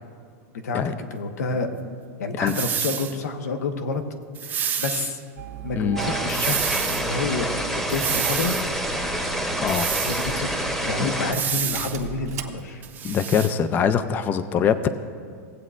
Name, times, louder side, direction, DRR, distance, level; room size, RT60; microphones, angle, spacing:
voice 1, 0.6-1.7 2.2-4.0 4.4-5.2 5.6-8.6 10.0-12.8, left 4 dB, 85° left, 6 dB, 1.1 m, -29 dB
sound 1, 2.5-3.2 4.4-5.1 6.3-7.1 7.9-8.7 9.7-10.3 11.3-12.0 12.8-13.5, right 8 dB, 20° right, 0.6 m, -28 dB
Engine starting, 5.3-13.2, right 7 dB, 80° right, 1.1 m, -39 dB
sound 2, 6.0-11.3, right 1 dB, 5° left, 0.9 m, -27 dB
voice 2, 13.0-14.9, left 7 dB, 20° left, 12 dB, 0.4 m, -23 dB
18.0 x 8.1 x 2.5 m, 2.1 s
supercardioid pair, 140°, 9 cm